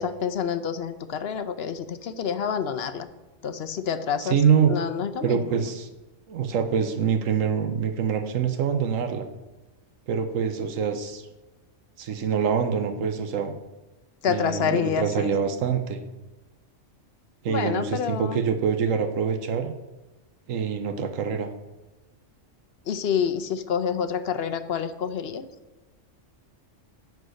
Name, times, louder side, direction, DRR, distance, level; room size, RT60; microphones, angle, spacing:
voice 1, 0.0-3.1 3.4-4.4 4.7-5.6 14.2-15.3 17.5-18.4 22.9-25.5, left 7 dB, 60° left, 10 dB, 0.9 m, -28 dB
voice 2, 4.2-4.7 5.2-5.9 6.3-9.3 10.1-11.3 12.0-13.5 14.3-16.0 17.4-19.7 20.5-21.5, right 7 dB, 90° right, 7 dB, 1.2 m, -25 dB
10.5 x 4.7 x 6.5 m, 1.1 s
omnidirectional pair, 1.3 m